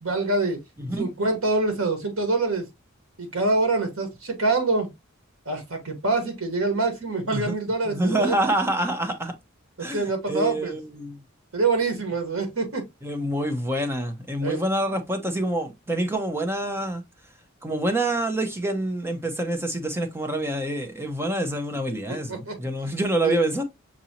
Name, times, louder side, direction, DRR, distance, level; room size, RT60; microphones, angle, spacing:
voice 1, 0.0-0.6 1.0-2.7 3.2-4.9 5.4-8.4 9.8-10.8 11.5-12.8 14.4-14.6 22.1-22.6 23.2-23.3, right 3 dB, 75° right, 1.4 m, -25 dB
voice 2, 7.3-9.3 9.8-11.2 13.0-17.0 17.6-23.6, right 1 dB, 10° right, 0.7 m, -27 dB
6.0 x 2.7 x 2.8 m
head